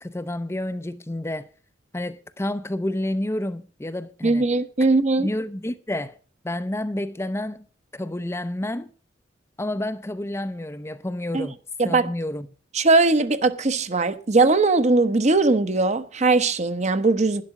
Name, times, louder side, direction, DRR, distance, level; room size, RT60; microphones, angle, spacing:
voice 1, 0.0-1.5 1.9-4.5 5.2-6.2 6.4-7.6 7.9-8.9 9.6-11.6 11.8-12.5, left 1 dB, 15° left, 0.5 m, -29 dB
voice 2, 4.2-5.3 11.3-11.5 11.8-12.1 12.7-17.4, right 3 dB, 35° right, 0.9 m, -20 dB
11.5 x 11.0 x 4.8 m
head